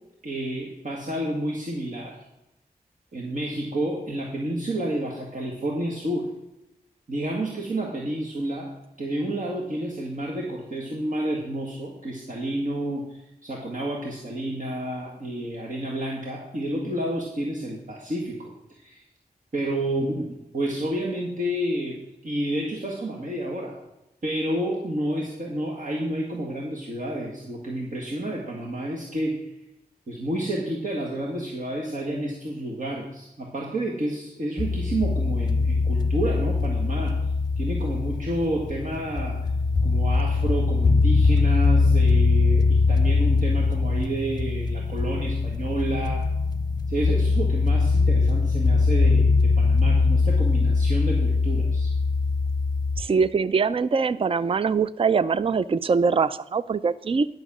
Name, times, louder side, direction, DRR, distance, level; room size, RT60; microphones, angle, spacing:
voice 1, 0.2-2.2 3.1-6.3 7.1-8.7 9.0-19.0 19.5-23.8 24.2-29.4 30.1-37.2 37.6-39.4 39.8-46.3 46.9-51.9, right 1 dB, 60° right, -2 dB, 1.9 m, -30 dB
sound 1, 34.6-53.0, left 4 dB, 25° left, 0.7 m, -22 dB
voice 2, 53.0-57.3, right 5 dB, 35° right, 16 dB, 0.4 m, -23 dB
11.0 x 6.4 x 6.1 m, 0.89 s
wide cardioid pair, 75°, 15 cm